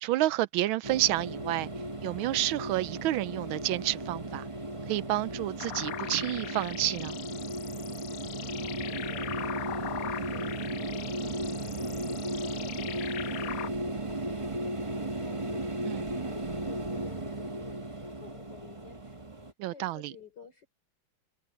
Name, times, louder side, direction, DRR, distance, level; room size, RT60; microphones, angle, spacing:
voice 1, 0.0-1.7 2.0-4.5 4.9-7.2 15.8-16.1 19.6-20.1, right 15 dB, 75° right, 1.4 m, -29 dB
sound 1, 0.8-19.5, right 1 dB, 20° right, 1.1 m, -35 dB
sound 2, 5.6-13.7, left 11 dB, 70° left, 0.8 m, -41 dB
voice 2, 8.3-20.7, left 5 dB, 55° left, 4.8 m, -54 dB
omnidirectional pair, 2.3 m